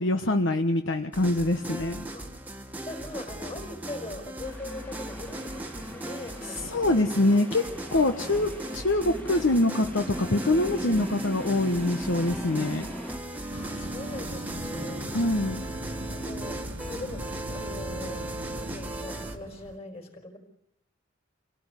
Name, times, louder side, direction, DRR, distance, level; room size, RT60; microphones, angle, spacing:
voice 1, 0.0-2.1 6.6-12.9 15.1-15.6, left 2 dB, 65° left, 6 dB, 1.1 m, -25 dB
sound 1, 1.1-19.4, right 1 dB, 10° right, 1.5 m, -37 dB
voice 2, 2.6-7.0 13.5-15.2 15.6-20.4, left 2 dB, 30° left, 4 dB, 4.7 m, -41 dB
sound 2, 4.5-13.2, equal, 5° left, 1.6 m, -40 dB
sound 3, 13.5-19.8, right 1 dB, 75° right, 1.6 m, -41 dB
27.0 x 17.5 x 8.3 m, 0.84 s
head